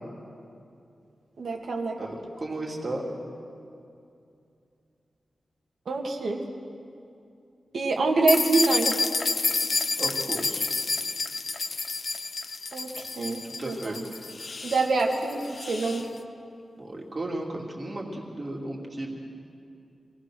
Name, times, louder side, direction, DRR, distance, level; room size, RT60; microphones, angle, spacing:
voice 1, 1.4-2.0 5.9-6.4 7.7-9.0 12.7-14.0 14.6-15.4 15.7-16.1, right 3 dB, 70° right, 1 dB, 2.3 m, -26 dB
voice 2, 2.0-3.0 10.0-10.7 13.6-14.0 16.8-19.1, right 2 dB, 30° right, -1 dB, 2.7 m, -34 dB
sound 1, 8.3-16.1, left 3 dB, 45° left, 0.8 m, -29 dB
26.5 x 18.5 x 6.3 m, 2.5 s
wide cardioid pair, 165°, 0 cm